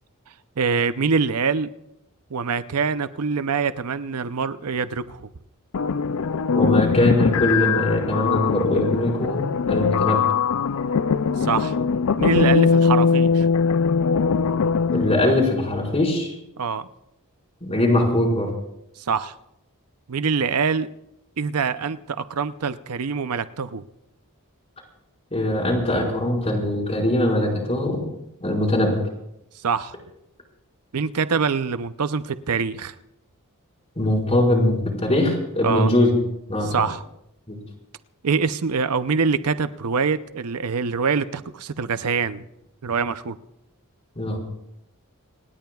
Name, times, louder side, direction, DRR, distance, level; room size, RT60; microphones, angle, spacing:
voice 1, 0.6-1.7 2.3-5.3 11.4-11.8 12.2-13.5 16.6-16.9 19.1-19.3 20.1-20.9 21.4-23.8 29.6-30.0 30.9-32.9 35.6-35.9 36.6-37.0 38.2-42.4 42.8-43.4, right 5 dB, 80° right, 0.6 m, -24 dB
sound 1, 5.7-15.3, left 5 dB, 65° left, 0.5 m, -21 dB
voice 2, 6.5-10.2 14.9-16.3 17.6-18.5 25.3-28.0 28.4-29.0 34.0-36.1 36.5-36.7 37.5-37.6 44.2-44.4, left 1 dB, 30° left, 5.0 m, -21 dB
27.0 x 19.5 x 2.4 m
head